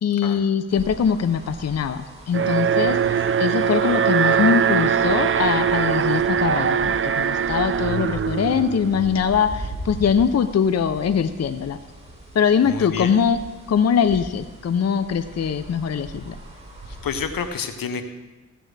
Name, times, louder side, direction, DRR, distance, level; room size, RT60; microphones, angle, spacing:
voice 1, 0.0-11.8 12.3-13.4 13.7-16.4, left 7 dB, 50° left, 11 dB, 0.6 m, -22 dB
sound 1, 0.7-17.6, right 1 dB, 20° right, 4.1 m, -40 dB
Alarm, 2.3-9.4, right 7 dB, 40° right, 0.5 m, -21 dB
voice 2, 12.6-13.1 16.9-18.1, left 6 dB, 80° left, 8 dB, 1.0 m, -29 dB
16.0 x 7.6 x 3.3 m, 1.2 s
cardioid pair, 55°, 34 cm